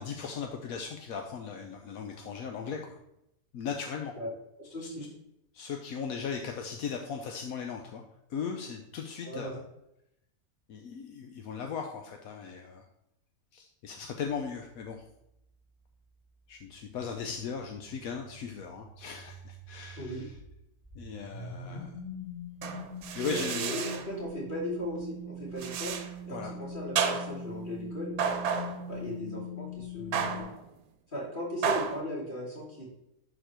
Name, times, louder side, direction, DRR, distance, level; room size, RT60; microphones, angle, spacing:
voice 1, 0.0-3.0 3.5-4.1 5.5-8.0 8.3-9.6 10.7-12.8 13.5-15.0 16.5-20.3 20.9-22.0 23.1-23.8 26.3-26.6, left 6 dB, 80° left, 4 dB, 1.2 m, -38 dB
voice 2, 4.6-5.1 9.2-9.6 20.0-20.3 21.6-21.8 23.2-26.0 26.2-28.1 28.9-30.5 31.1-32.8, left 1 dB, 35° left, -5 dB, 3.0 m, -37 dB
sound 1, 17.3-20.4 20.8-30.4, left 1 dB, 10° left, 3.1 m, -43 dB
sound 2, 22.6-24.1 25.6-26.1 27.0-27.5 28.2-28.9 30.1-30.6 31.6-32.0, right 6 dB, 80° right, 1.2 m, -31 dB
11.0 x 4.5 x 4.4 m, 0.83 s
omnidirectional pair, 1.5 m